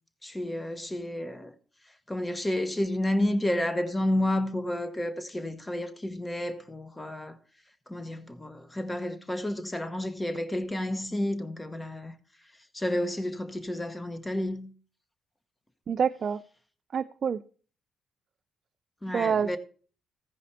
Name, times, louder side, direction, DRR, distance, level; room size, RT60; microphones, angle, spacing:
voice 1, 0.2-1.5 2.1-7.4 7.9-12.1 12.7-14.7 19.0-19.6, left 1 dB, 15° left, 1.0 m, -30 dB
voice 2, 15.9-16.4 16.9-17.4 19.1-19.6, right 7 dB, 50° right, 0.3 m, -27 dB
14.5 x 5.2 x 4.2 m
cardioid pair, 90°, 0 cm